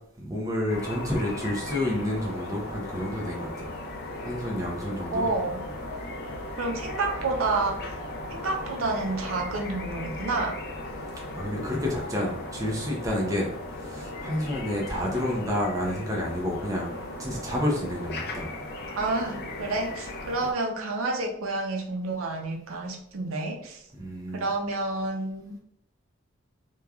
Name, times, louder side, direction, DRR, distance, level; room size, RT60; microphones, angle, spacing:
voice 1, 0.2-3.7 4.2-5.3 11.3-13.5 13.8-16.9 17.2-18.5 24.0-24.5, left 1 dB, 15° right, -2 dB, 0.5 m, -29 dB
sound 1, 0.7-20.5, left 2 dB, 50° left, 0.4 m, -37 dB
voice 2, 5.1-5.6 6.6-7.8 8.3-10.6 19.0-23.8 24.3-25.5, right 3 dB, 80° right, 1 dB, 0.5 m, -29 dB
3.0 x 2.3 x 2.3 m, 0.68 s
head